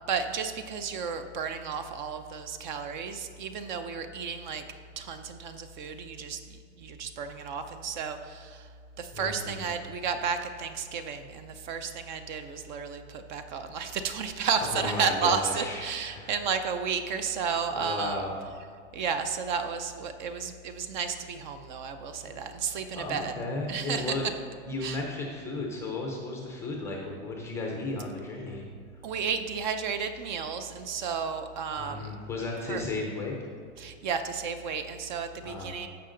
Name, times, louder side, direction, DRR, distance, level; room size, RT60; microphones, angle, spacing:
voice 1, 0.1-4.6 5.0-8.7 9.0-18.2 18.9-23.3 23.7-24.3 24.8-25.0 29.0-32.1 32.7-32.8 33.8-35.9, right 6 dB, 40° right, 9 dB, 0.5 m, -32 dB
voice 2, 9.1-9.7 14.6-15.8 16.1-16.3 17.7-18.5 22.9-24.3 24.7-28.6 31.8-33.4 35.4-35.8, left 2 dB, 10° left, 0 dB, 0.5 m, -34 dB
15.0 x 5.8 x 3.8 m, 2.1 s
supercardioid pair, 170°, 36 cm